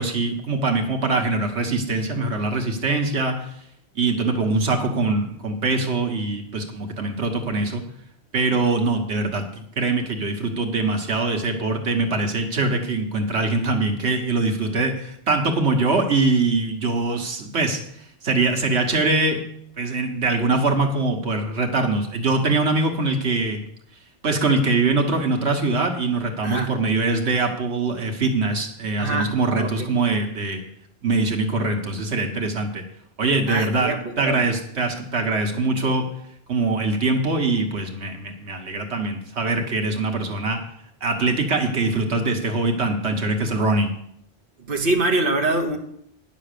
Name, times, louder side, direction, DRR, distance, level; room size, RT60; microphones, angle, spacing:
voice 1, 0.0-3.5 3.9-7.8 8.3-17.8 18.2-19.4 19.8-23.6 24.2-30.6 31.0-32.8 33.2-36.1 36.5-40.6 41.0-43.9, right 3 dB, 85° right, 4 dB, 1.6 m, -23 dB
voice 2, 26.4-26.7 29.0-29.7 33.5-34.4 44.7-45.8, right 2 dB, 55° right, 2 dB, 1.4 m, -24 dB
10.5 x 6.7 x 6.7 m, 0.71 s
omnidirectional pair, 1.1 m